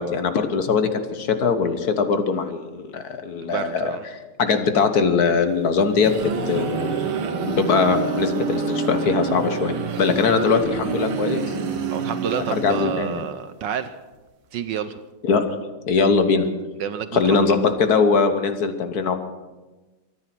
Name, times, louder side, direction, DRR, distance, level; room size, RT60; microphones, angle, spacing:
voice 1, 0.0-3.9 4.4-6.1 6.5-7.0 7.4-11.5 12.2-13.2 15.2-15.4 15.9-16.5 17.1-19.2, left 5 dB, 50° left, 9 dB, 1.5 m, -21 dB
voice 2, 3.4-4.0 7.1-7.3 11.9-14.0 14.5-15.0 16.8-17.4, right 8 dB, 70° right, 11 dB, 1.3 m, -29 dB
sound 1, 5.7-13.4, right 5 dB, 85° right, 2.1 m, -27 dB
23.5 x 10.0 x 6.0 m, 1.2 s
omnidirectional pair, 2.3 m